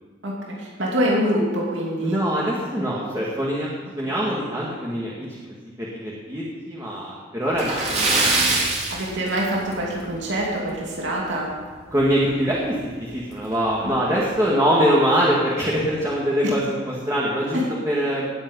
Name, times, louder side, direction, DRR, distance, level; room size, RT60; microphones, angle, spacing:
voice 1, 0.6-2.2 8.9-11.5 16.4-16.5 17.5-17.6, equal, 80° right, -3 dB, 2.9 m, -24 dB
voice 2, 2.0-3.7 4.0-5.4 5.8-8.6 11.9-17.6 17.9-18.3, equal, 15° right, -5 dB, 2.1 m, -23 dB
Splash splatter, 7.5-9.9 10.2-10.4 10.8-10.9 12.4-12.5 12.8-12.9 13.5-13.8, right 2 dB, 35° right, 3.2 m, -23 dB
19.0 x 8.9 x 5.5 m, 1.4 s
head